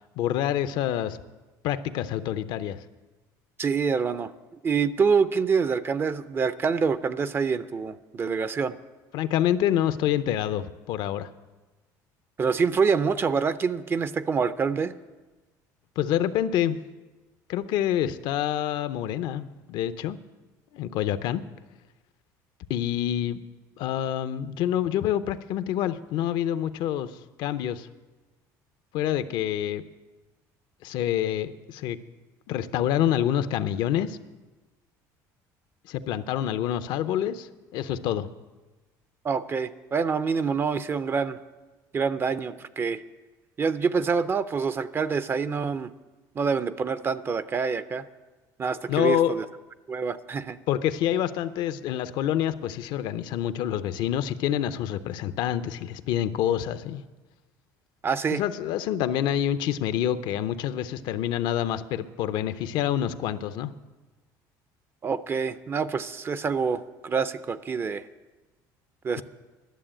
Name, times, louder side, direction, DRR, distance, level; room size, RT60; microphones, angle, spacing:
voice 1, 0.2-1.2 1.6-2.8 9.1-11.3 16.0-16.8 17.5-20.2 20.7-21.4 22.7-23.4 23.8-27.1 27.4-27.9 28.9-29.8 30.8-32.0 32.5-34.2 35.9-38.3 48.9-49.3 50.7-57.0 58.3-63.7, left 11 dB, 70° left, 13 dB, 0.6 m, -27 dB
voice 2, 3.6-4.3 4.6-8.7 12.4-14.9 39.2-41.4 41.9-43.0 43.6-45.9 46.4-48.0 48.6-49.5 49.9-50.6 58.0-58.4 65.0-68.0 69.0-69.2, right 5 dB, 30° right, 14 dB, 0.4 m, -26 dB
11.5 x 7.0 x 8.8 m, 1.2 s
cardioid pair, 115°, 8 cm